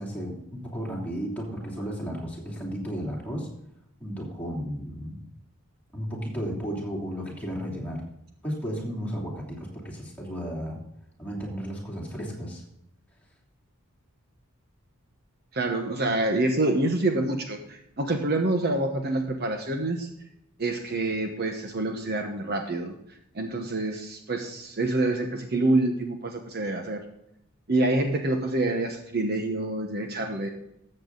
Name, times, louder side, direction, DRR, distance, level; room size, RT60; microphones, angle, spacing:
voice 1, 0.0-3.5 4.0-5.2 5.9-8.0 8.4-10.8 11.2-12.6, equal, 5° left, -3 dB, 3.0 m, -33 dB
voice 2, 15.5-20.1 20.6-23.0 23.3-27.0 27.7-30.5, right 2 dB, 45° right, 4 dB, 1.1 m, -27 dB
14.0 x 7.8 x 3.9 m, 0.80 s
head